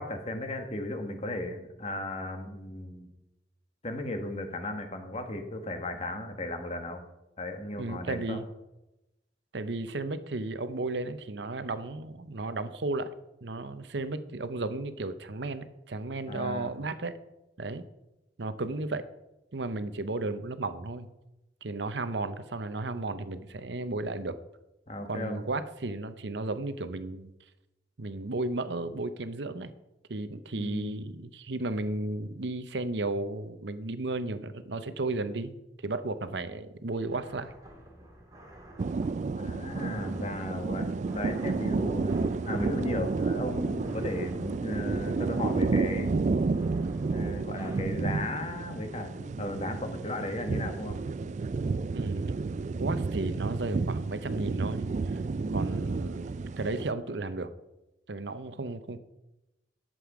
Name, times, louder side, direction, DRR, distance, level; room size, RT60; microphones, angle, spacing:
voice 1, 0.0-3.1 3.8-7.0 7.4-8.4 16.3-16.7 24.9-25.4 30.5-31.0 39.3-42.2 42.4-46.1 47.1-51.0, left 1 dB, 35° left, 6 dB, 1.4 m, -35 dB
voice 2, 7.8-8.4 9.5-13.1 13.4-17.1 17.6-17.9 18.4-19.1 19.5-21.1 21.6-24.4 25.1-27.3 28.0-29.7 30.1-35.5 35.8-37.5 51.9-52.5 52.8-55.2 55.5-57.5 58.1-59.0, right 2 dB, 75° right, 12 dB, 0.8 m, -34 dB
sound 1, 37.1-47.8, right 1 dB, 20° right, 2.0 m, -51 dB
sound 2, 38.8-56.9, right 3 dB, 40° right, 0.3 m, -31 dB
11.5 x 7.8 x 4.9 m, 0.94 s
head